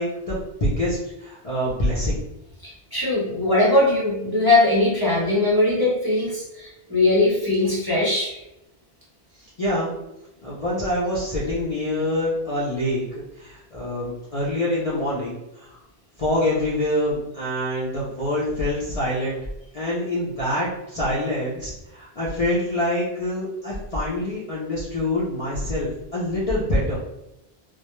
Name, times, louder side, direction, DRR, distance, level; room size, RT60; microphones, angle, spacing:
voice 1, 0.0-2.2 9.4-9.9 10.4-13.1 13.4-15.7 16.2-19.4 19.7-27.0, left 1 dB, 45° left, -8 dB, 0.5 m, -25 dB
voice 2, 2.6-8.4, left 2 dB, 25° right, -8 dB, 0.6 m, -20 dB
2.2 x 2.0 x 2.9 m, 0.90 s
omnidirectional pair, 1.1 m